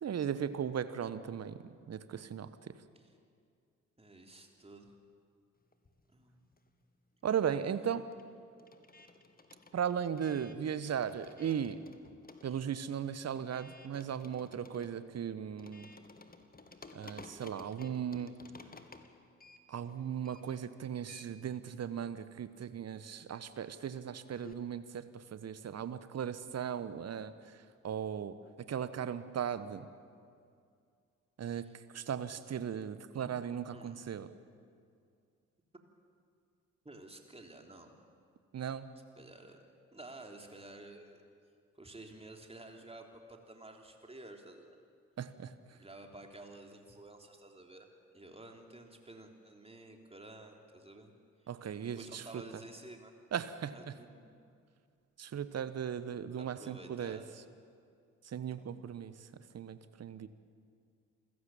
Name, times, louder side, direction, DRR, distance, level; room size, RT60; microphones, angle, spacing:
voice 1, 0.0-1.6 1.9-2.7 7.2-8.1 9.7-11.8 12.4-15.9 16.9-18.4 19.7-27.3 27.8-29.9 31.4-31.6 31.9-34.3 38.5-38.9 45.2-45.5 51.5-52.2 53.3-53.7 55.2-57.2 58.3-59.1 59.5-60.3, right 8 dB, 40° right, 13 dB, 1.3 m, -37 dB
voice 2, 4.0-4.9 6.1-6.5 12.5-12.9 31.6-31.7 33.2-33.3 33.7-34.0 36.8-37.9 39.2-39.6 39.9-41.2 41.7-44.8 45.8-47.9 48.1-51.1 52.0-53.1 53.7-54.4 56.4-57.3 58.6-58.7, right 2 dB, 15° right, 3 dB, 3.4 m, -52 dB
sound 1, 5.7-7.0 7.2-24.5, left 3 dB, 25° left, 1.8 m, -57 dB
28.0 x 16.0 x 7.3 m, 2.3 s
figure-of-eight pair, 40°, 38 cm